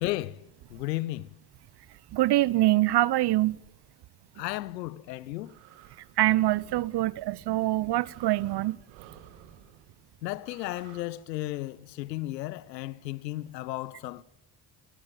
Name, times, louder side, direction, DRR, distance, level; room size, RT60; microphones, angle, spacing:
voice 1, 0.0-1.3 4.3-5.5 10.2-14.2, left 17 dB, 80° left, 1.0 m, -34 dB
voice 2, 2.1-3.6 6.2-8.8, right 15 dB, 55° right, 1.0 m, -24 dB
sound 1, 5.0-11.0, right 10 dB, 70° right, 2.7 m, -54 dB
29.5 x 22.0 x 7.7 m
figure-of-eight pair, 45°, 49 cm